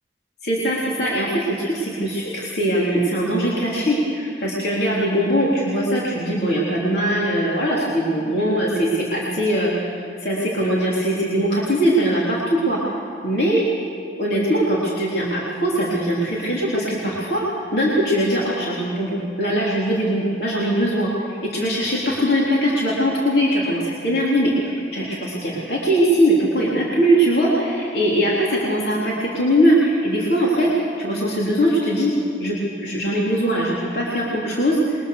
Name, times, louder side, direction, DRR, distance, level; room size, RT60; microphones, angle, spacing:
voice 1, 0.4-12.8 13.2-13.7 14.2-17.4 17.7-30.7 31.0-32.1 32.4-35.1, equal, 60° left, -5 dB, 3.7 m, -21 dB
27.5 x 22.5 x 6.8 m, 2.4 s
head